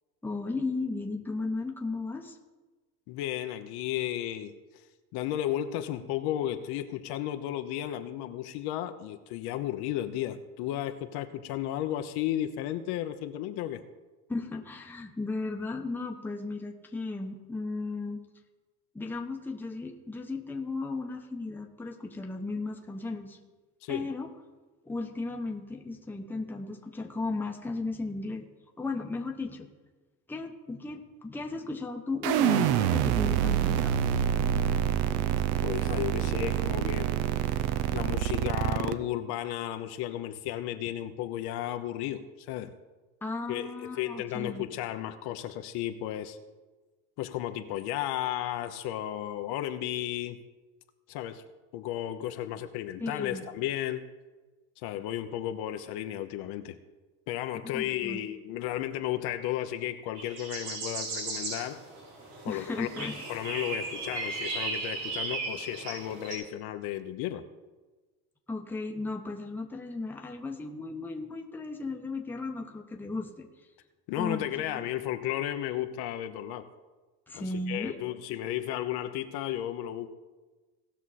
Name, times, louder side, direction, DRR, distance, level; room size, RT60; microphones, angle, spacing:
voice 1, 0.2-2.4 14.3-18.2 18.9-23.4 23.9-24.3 24.8-28.4 28.8-29.7 30.3-34.0 43.2-44.7 53.0-53.4 57.7-58.2 62.4-63.1 68.5-73.5 74.2-74.9 77.3-78.0, left 3 dB, 5° left, 2 dB, 1.0 m, -35 dB
voice 2, 3.1-4.5 5.1-13.8 23.8-24.1 35.6-37.1 37.9-42.7 43.5-46.4 47.2-50.4 51.1-51.4 51.7-54.1 54.8-56.8 57.3-61.8 62.4-67.4 74.1-76.7 77.3-80.1, left 12 dB, 60° left, 8 dB, 0.9 m, -34 dB
sound 1, 32.2-38.9, right 10 dB, 60° right, 0.7 m, -27 dB
sound 2, 60.2-66.3, right 3 dB, 75° right, 4.3 m, -36 dB
18.0 x 6.1 x 4.2 m, 1.2 s
cardioid pair, 135°, 43 cm